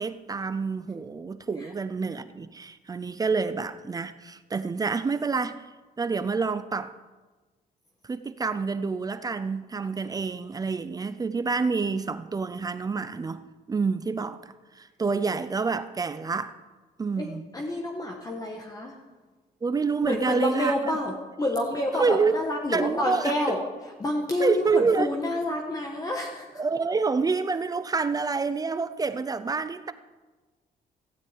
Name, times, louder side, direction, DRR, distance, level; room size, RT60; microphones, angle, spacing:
voice 1, 0.0-5.6 6.0-6.9 8.1-13.4 13.7-14.4 14.8-16.5 17.0-17.5 19.6-20.9 21.9-22.4 22.7-23.6 24.4-25.1 26.6-29.9, right 4 dB, 25° right, 12 dB, 0.6 m, -27 dB
voice 2, 17.5-18.9 20.0-23.6 24.0-26.4, left 1 dB, 25° left, 0 dB, 1.6 m, -28 dB
15.5 x 8.1 x 9.4 m, 1.3 s
cardioid pair, 150°, 16 cm